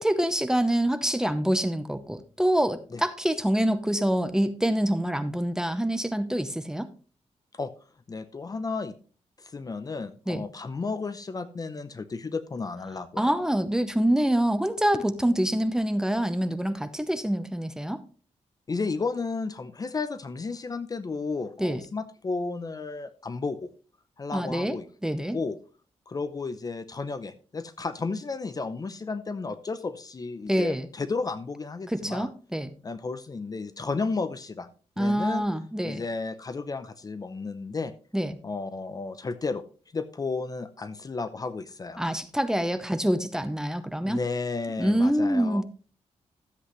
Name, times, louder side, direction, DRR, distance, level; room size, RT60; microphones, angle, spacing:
voice 1, 0.0-6.9 10.3-10.4 13.2-18.0 21.6-21.8 24.3-24.8 25.0-25.4 30.5-30.9 31.9-32.7 35.0-36.0 38.1-38.4 42.0-44.2 44.8-45.6, right 1 dB, 5° right, 10 dB, 0.8 m, -26 dB
voice 2, 8.1-8.9 9.4-13.4 18.7-23.7 24.2-24.9 25.3-25.6 26.1-32.3 32.8-34.7 35.0-35.4 35.8-37.9 38.4-39.6 39.9-42.0 44.0-45.6, left 4 dB, 35° left, 13 dB, 0.7 m, -33 dB
13.0 x 8.0 x 3.1 m, 0.38 s
wide cardioid pair, 120°, 12 cm